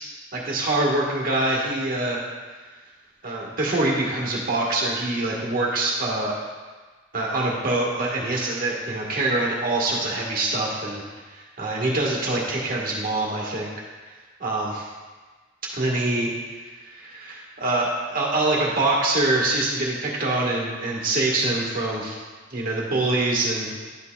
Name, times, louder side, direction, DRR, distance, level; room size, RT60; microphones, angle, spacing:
voice 1, 0.3-2.2 3.2-6.3 7.1-11.0 11.6-13.7 14.4-14.9 15.7-16.3 16.8-22.2 22.5-23.7, right 2 dB, 50° right, -3 dB, 1.4 m, -24 dB
11.0 x 5.5 x 2.3 m, 1.4 s
head